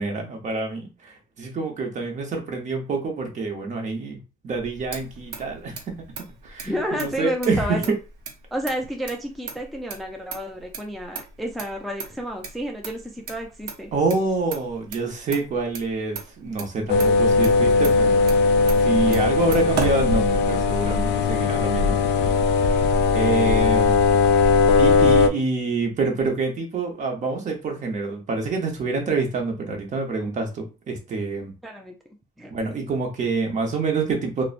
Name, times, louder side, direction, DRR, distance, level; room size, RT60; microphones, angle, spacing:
voice 1, 0.0-4.2 4.4-5.9 6.4-7.8 13.9-18.4 18.8-22.9 23.1-24.0 24.8-31.5 32.5-34.4, right 3 dB, 45° right, 3 dB, 0.9 m, -27 dB
Motor vehicle (road), 4.5-20.8, right 5 dB, 75° right, 0.7 m, -37 dB
voice 2, 6.6-7.8 8.5-13.9 17.0-17.1 31.6-31.9 32.4-32.5, equal, ahead, 1 dB, 0.4 m, -31 dB
sound 1, 16.9-25.3, left 4 dB, 85° left, 0.4 m, -19 dB
3.0 x 2.0 x 2.5 m, 0.31 s
cardioid pair, 110°, 17 cm